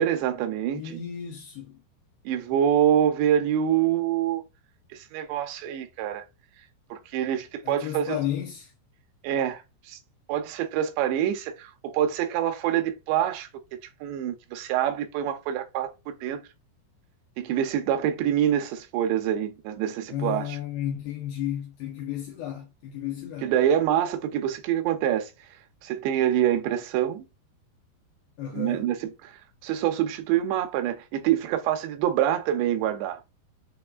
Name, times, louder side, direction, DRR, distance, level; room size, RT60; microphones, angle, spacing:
voice 1, 0.0-0.8 2.3-4.4 4.9-6.2 6.9-8.1 9.2-9.6 9.9-10.0 10.3-13.5 14.0-16.4 17.4-20.5 23.4-25.3 25.8-27.3 28.5-29.1 29.6-33.2, right 10 dB, 85° right, 3.0 m, -25 dB
voice 2, 0.7-1.8 7.6-8.7 20.1-23.5 28.4-28.9, left 11 dB, 75° left, 2.6 m, -33 dB
6.9 x 3.1 x 2.3 m
omnidirectional pair, 4.9 m